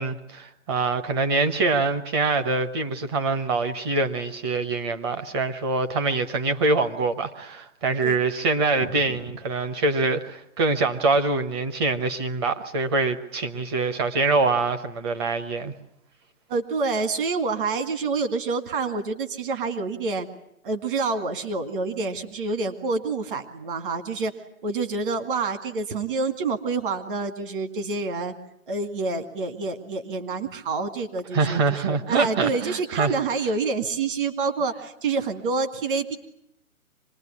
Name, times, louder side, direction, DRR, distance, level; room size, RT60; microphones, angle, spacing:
voice 1, 0.0-15.7 31.3-33.2, right 3 dB, 20° right, 7 dB, 1.0 m, -24 dB
voice 2, 8.8-9.2 16.5-20.3 20.6-24.3 24.6-28.3 28.7-36.2, right 4 dB, 40° right, 7 dB, 2.3 m, -27 dB
25.5 x 20.5 x 9.8 m, 0.79 s
hypercardioid pair, 160°, 42 cm